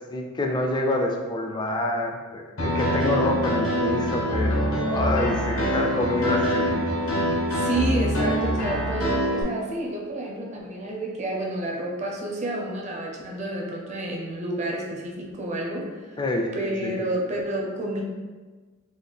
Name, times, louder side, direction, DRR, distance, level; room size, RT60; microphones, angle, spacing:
voice 1, 0.1-6.9 16.2-16.5 16.8-17.0, left 2 dB, 20° left, 2 dB, 0.3 m, -27 dB
Piano, 2.6-9.4, equal, 90° left, 0.9 m, -24 dB
voice 2, 7.5-16.2 16.5-18.0, right 1 dB, 35° right, -1 dB, 0.6 m, -30 dB
3.8 x 2.2 x 3.4 m, 1.4 s
head